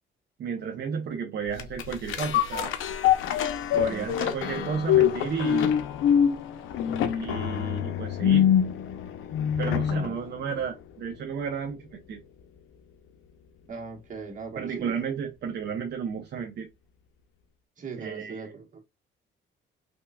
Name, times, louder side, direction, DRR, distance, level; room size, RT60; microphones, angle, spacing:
voice 1, 0.4-2.7 3.7-5.7 7.1-8.5 9.6-12.2 14.6-16.7 18.0-18.5, right 6 dB, 55° right, 0.7 m, -33 dB
sound 1, 1.6-10.2 10.6-10.7, left 9 dB, 85° left, 0.6 m, -25 dB
voice 2, 3.7-4.2 9.7-10.2 13.7-14.9 17.8-18.8, right 4 dB, 40° right, 1.5 m, -39 dB
3.4 x 2.9 x 2.3 m
cardioid pair, 90°, 20 cm